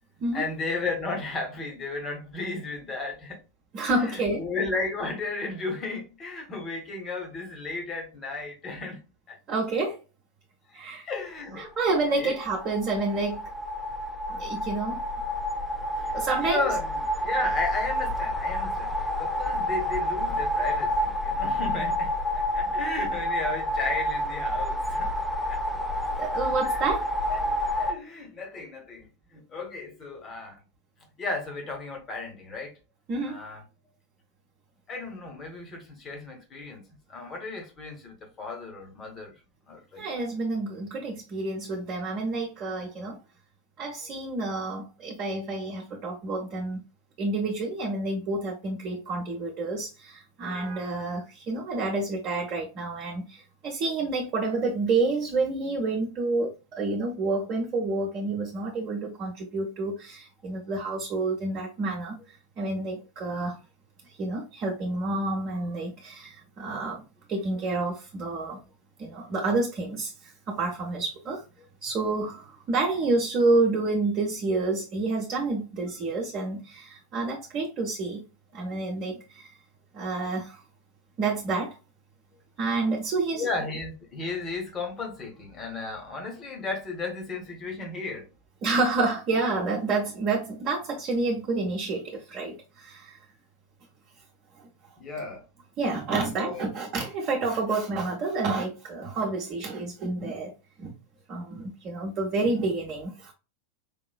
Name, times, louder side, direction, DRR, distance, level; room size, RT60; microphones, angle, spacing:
voice 1, 0.3-3.4 3.8-9.0 9.3-9.4 10.7-12.3 16.0-25.1 25.5-25.6 26.6-27.0 27.3-30.6 31.2-32.8 33.3-33.6 34.9-39.4 39.7-40.1 76.0-76.2 83.4-88.3 95.0-95.4 96.1-96.8, left 3 dB, 25° left, 1.4 m, -34 dB
voice 2, 3.7-4.4 9.5-10.0 10.7-11.0 11.6-13.4 14.3-15.2 16.1-16.7 26.1-27.1 33.1-33.4 40.0-43.2 43.8-46.8 47.2-62.1 62.6-63.6 64.2-67.0 67.3-68.6 69.0-71.4 71.8-78.2 78.5-79.5 79.9-80.6 81.2-81.8 82.6-83.5 88.6-93.2 94.6-94.7 95.8-100.5 100.8-100.9 101.3-103.3, right 3 dB, 35° right, 1.1 m, -29 dB
sound 1, 12.0-27.9, equal, 5° left, 0.5 m, -29 dB
5.1 x 2.9 x 2.3 m
figure-of-eight pair, 90°, 0 cm